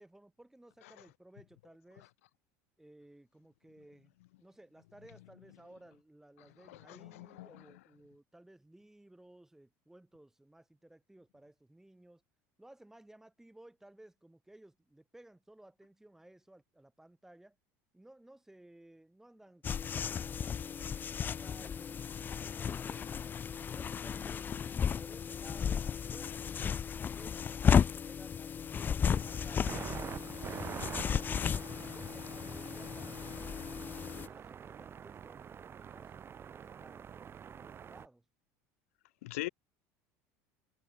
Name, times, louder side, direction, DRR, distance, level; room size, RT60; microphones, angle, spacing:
voice 1, 0.0-2.1 2.8-12.2 12.6-17.6 17.9-23.2 23.7-26.8 27.1-29.8 30.7-33.5 33.8-38.2, right 1 dB, 5° right, 4.7 m, -58 dB
voice 2, 6.7-7.6 39.2-39.5, left 19 dB, 90° left, 0.6 m, -41 dB
sound 1, 19.6-34.3, left 7 dB, 25° left, 0.3 m, -34 dB
sound 2, 29.0-38.1, right 8 dB, 35° right, 1.0 m, -46 dB
supercardioid pair, 100°, 7 cm